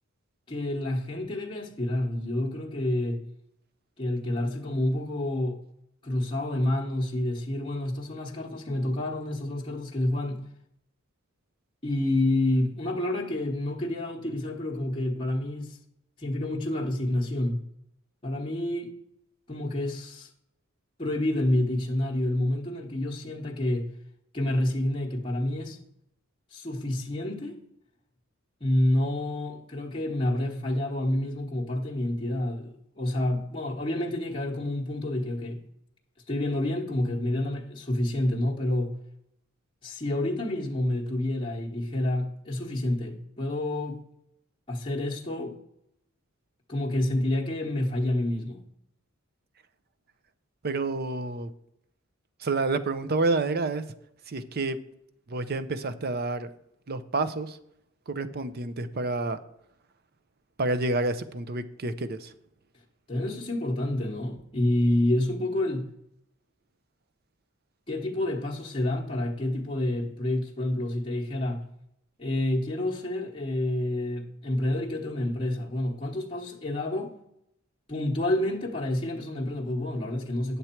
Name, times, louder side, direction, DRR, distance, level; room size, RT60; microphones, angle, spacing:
voice 1, 0.5-3.2 4.0-5.6 6.0-10.4 11.8-15.8 16.2-17.6 18.2-19.0 19.5-20.3 21.0-23.9 24.3-25.8 26.5-27.6 28.6-35.6 36.3-38.9 39.8-44.0 44.7-45.6 46.7-48.6 63.1-65.9 67.9-71.6 72.2-77.2 77.9-80.6, left 1 dB, 25° left, 1.0 m, -28 dB
voice 2, 50.6-51.5 52.4-53.8 54.3-54.8 55.3-56.5 56.9-57.6 58.1-59.4 60.6-62.3, right 3 dB, 50° right, 0.6 m, -29 dB
9.7 x 6.8 x 4.4 m
head